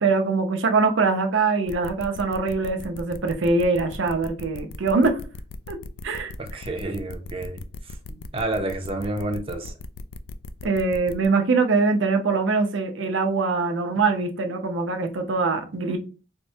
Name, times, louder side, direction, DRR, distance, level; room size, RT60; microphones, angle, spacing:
voice 1, 0.0-5.2 5.7-6.3 10.6-16.0, right 4 dB, 80° right, 0.6 m, -23 dB
sound 1, 1.7-11.3, left 3 dB, 80° left, 0.3 m, -38 dB
voice 2, 6.4-9.8, right 2 dB, 30° right, 0.5 m, -30 dB
4.4 x 2.1 x 2.6 m
head